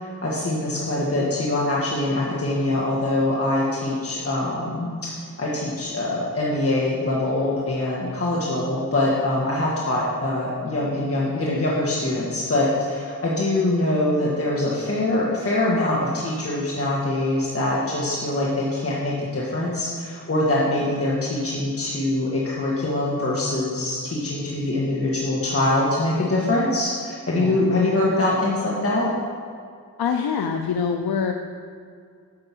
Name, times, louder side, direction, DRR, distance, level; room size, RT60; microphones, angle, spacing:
voice 1, 0.0-5.1 5.4-29.1, left 2 dB, 40° left, -5 dB, 2.1 m, -23 dB
voice 2, 27.4-27.7 30.0-31.3, left 6 dB, 90° left, 4 dB, 0.7 m, -25 dB
10.5 x 7.7 x 6.2 m, 2.3 s
wide cardioid pair, 85°, 36 cm